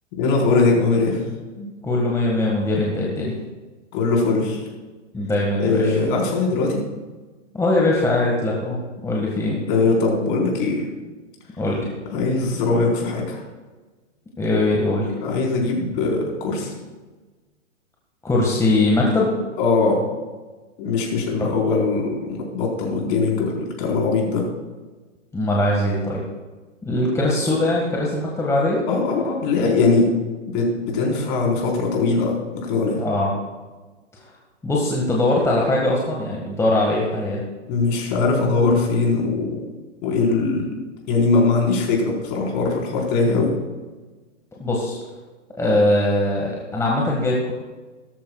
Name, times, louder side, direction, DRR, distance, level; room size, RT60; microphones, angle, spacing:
voice 1, 0.2-1.2 1.6-1.7 3.9-4.6 5.6-6.8 9.7-10.8 12.1-13.4 15.2-16.7 19.6-20.0 20.8-24.4 28.9-30.1 30.5-33.0 37.7-39.6 40.0-40.6 41.1-43.5, left 3 dB, 40° left, -1 dB, 4.5 m, -21 dB
voice 2, 1.8-3.4 5.1-6.0 7.5-8.8 9.0-9.6 11.5-11.9 14.4-15.1 18.2-19.3 25.3-26.2 26.9-28.8 33.0-33.3 34.6-37.4 44.6-45.0 45.6-47.5, left 2 dB, 5° left, -3 dB, 1.7 m, -21 dB
17.0 x 13.5 x 2.4 m, 1.3 s
hypercardioid pair, 120°, 38 cm